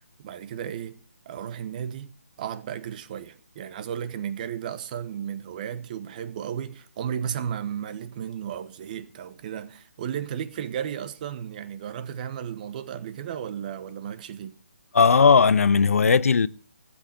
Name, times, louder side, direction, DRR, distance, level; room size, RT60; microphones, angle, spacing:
voice 1, 0.2-1.0 1.3-2.1 2.4-14.5, right 9 dB, 30° right, 1.0 m, -34 dB
voice 2, 14.9-16.5, left 5 dB, 65° left, 0.6 m, -17 dB
15.5 x 8.1 x 6.6 m
figure-of-eight pair, 150°, 8 cm